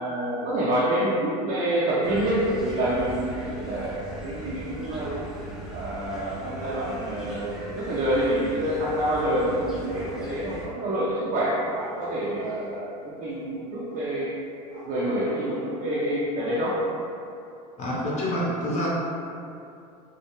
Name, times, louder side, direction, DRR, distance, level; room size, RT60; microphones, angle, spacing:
voice 1, 0.0-5.1 5.7-14.3 14.9-16.8, right 1 dB, 45° right, -9 dB, 0.6 m, -27 dB
sound 1, 2.0-10.7, right 1 dB, ahead, 0.5 m, -39 dB
sound 2, 5.0-5.6 6.6-7.0 10.0-10.7 11.6-12.8 13.9-14.3 14.7-15.8 16.1-16.6, right 2 dB, 65° right, 0.9 m, -43 dB
voice 2, 17.8-18.9, equal, 35° left, -5 dB, 0.7 m, -27 dB
2.3 x 2.1 x 2.8 m, 2.6 s
hypercardioid pair, 95°, 20 cm